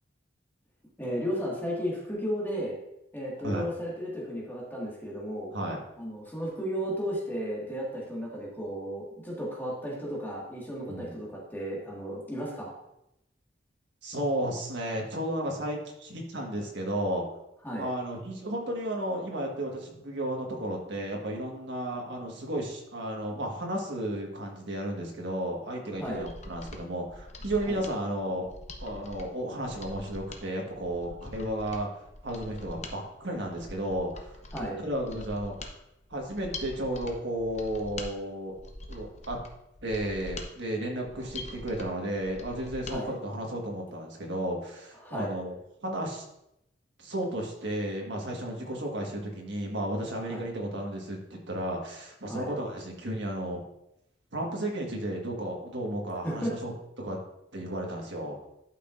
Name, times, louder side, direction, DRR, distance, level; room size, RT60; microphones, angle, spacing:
voice 1, 1.0-2.8 3.1-5.5 6.0-12.7 17.6-17.9 26.0-26.3 27.7-27.8 34.5-34.8 42.9-43.1 45.0-45.3 50.3-50.5 52.3-52.5 56.2-56.5, equal, 10° left, -4 dB, 1.9 m, -34 dB
voice 2, 10.9-11.3 14.0-17.2 17.8-28.4 28.8-34.3 34.8-35.5 36.1-38.5 38.9-39.4 39.8-45.6 45.8-46.2 47.0-53.6 54.3-56.7 57.0-57.2 57.5-58.5, right 1 dB, 70° right, 0 dB, 1.6 m, -33 dB
Mechanisms, 26.0-43.0 43.3-43.4, left 2 dB, 40° left, 0.8 m, -44 dB
11.5 x 5.9 x 2.6 m, 0.83 s
head